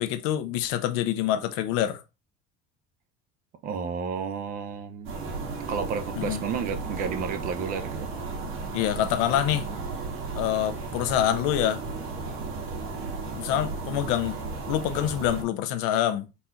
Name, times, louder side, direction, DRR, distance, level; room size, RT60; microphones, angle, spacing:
voice 1, 0.0-2.0 6.2-6.4 8.7-9.7 10.4-11.8 13.4-14.4 14.7-16.3, left 11 dB, 80° left, 0.7 m, -26 dB
voice 2, 3.6-5.1 5.7-8.1, right 6 dB, 40° right, 0.5 m, -31 dB
sound 1, 5.0-15.4, right 4 dB, 70° right, 2.0 m, -34 dB
4.2 x 2.4 x 4.2 m
cardioid pair, 155°, 21 cm